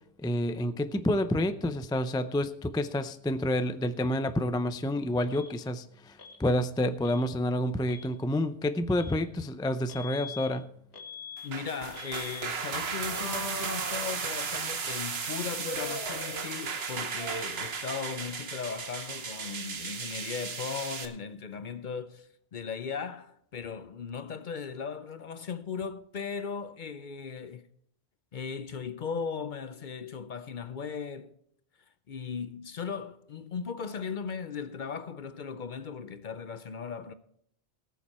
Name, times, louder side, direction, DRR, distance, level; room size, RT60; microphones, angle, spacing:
voice 1, 0.2-10.7, left 1 dB, 5° left, 0.3 m, -29 dB
Alarm, 5.3-5.5 6.2-6.4 7.0-7.2 7.8-8.1 9.0-9.2 9.9-10.5 10.9-11.5 11.9-12.5 13.1-14.6 15.6-16.8 17.1-17.7 18.0-19.7, left 2 dB, 70° left, 2.0 m, -43 dB
voice 2, 11.4-27.7 28.3-31.3 32.1-37.1, left 6 dB, 50° left, 0.7 m, -37 dB
sound 1, 11.4-21.1, right 5 dB, 65° right, 1.3 m, -35 dB
18.5 x 7.1 x 4.3 m
omnidirectional pair, 1.1 m